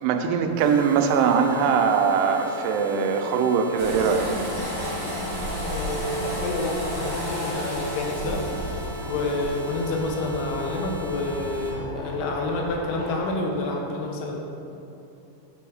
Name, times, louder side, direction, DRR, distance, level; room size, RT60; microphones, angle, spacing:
voice 1, 0.0-4.5, right 6 dB, 90° right, 5 dB, 2.7 m, -22 dB
sound 1, 0.6-11.7, left 1 dB, 75° right, 1.6 m, -39 dB
sound 2, 3.8-13.2, equal, 65° left, 2.4 m, -37 dB
sound 3, 3.8-12.1, equal, 55° right, 2.6 m, -34 dB
voice 2, 5.6-14.4, left 2 dB, 85° left, 1 dB, 2.7 m, -29 dB
7.8 x 3.5 x 4.7 m, 2.7 s
omnidirectional pair, 4.7 m